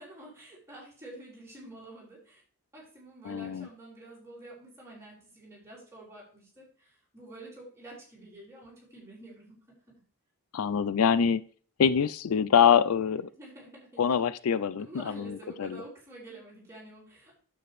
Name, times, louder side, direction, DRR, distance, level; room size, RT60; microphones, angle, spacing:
voice 1, 0.0-2.4 2.7-9.5 13.3-14.0 14.8-17.4, right 1 dB, 10° right, -6 dB, 4.7 m, -48 dB
voice 2, 3.2-3.7 10.5-11.4 11.8-13.3 14.0-15.8, left 7 dB, 75° left, 17 dB, 0.4 m, -25 dB
9.3 x 7.9 x 3.2 m, 0.42 s
head